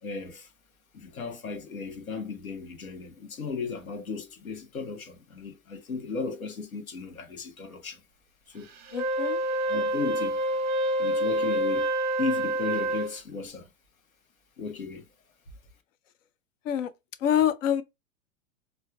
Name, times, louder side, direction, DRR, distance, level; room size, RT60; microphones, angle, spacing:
voice 1, 0.0-0.5 0.9-8.0 8.5-8.7 9.6-10.4 11.0-11.9 12.2-13.7 14.6-15.1, left 4 dB, 90° left, 0.9 m, -35 dB
voice 2, 8.9-9.4 16.7-16.9 17.2-17.8, left 10 dB, 65° left, 0.6 m, -25 dB
Wind instrument woodwind instrument, 8.9-13.2, right 1 dB, 25° right, 0.6 m, -27 dB
4.3 x 2.2 x 2.2 m
hypercardioid pair, 110°, 41 cm